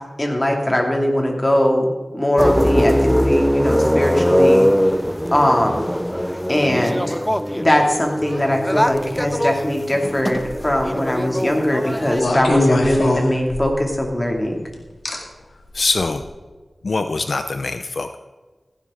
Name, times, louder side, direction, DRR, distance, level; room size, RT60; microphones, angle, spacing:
voice 1, 0.2-4.7 5.3-5.9 6.5-7.2 7.6-14.6, left 1 dB, 25° left, 1 dB, 2.5 m, -20 dB
sound 1, 2.4-12.2, equal, 5° left, 0.4 m, -21 dB
sound 2, 10.4-10.8 12.1-13.9 15.0-15.2 16.0-16.2, left 1 dB, 85° left, 2.0 m, -20 dB
voice 2, 15.7-16.2 16.8-18.2, left 3 dB, 70° left, 8 dB, 0.5 m, -23 dB
15.0 x 11.0 x 3.7 m, 1.3 s
wide cardioid pair, 65°, 0 cm